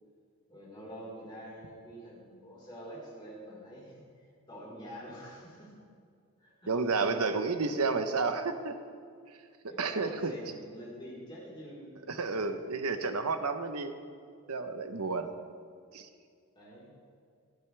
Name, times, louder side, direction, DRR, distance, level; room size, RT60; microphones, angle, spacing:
voice 1, 0.5-5.7 6.4-6.8 9.7-11.9 14.9-15.3 16.5-16.9, equal, 20° left, -7 dB, 4.2 m, -47 dB
voice 2, 6.7-8.7 9.8-10.3 12.1-13.9 14.5-15.3 15.9-16.1, right 4 dB, 85° right, 8 dB, 1.0 m, -31 dB
26.5 x 9.2 x 3.4 m, 2.2 s
head